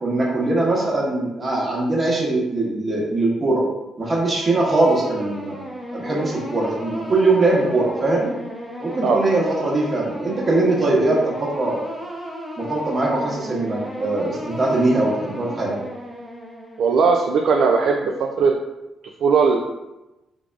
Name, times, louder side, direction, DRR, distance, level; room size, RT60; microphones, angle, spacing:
voice 1, 0.0-3.6 4.0-5.6 5.9-8.3 8.8-11.8 12.6-15.8, right 2 dB, 35° right, -3 dB, 1.0 m, -21 dB
sound 1, 4.2-17.1, equal, 5° left, 0.7 m, -34 dB
voice 2, 16.8-18.5 19.2-19.6, right 5 dB, 70° right, 2 dB, 0.3 m, -18 dB
3.4 x 3.3 x 2.4 m, 0.99 s
cardioid pair, 90°, 0 cm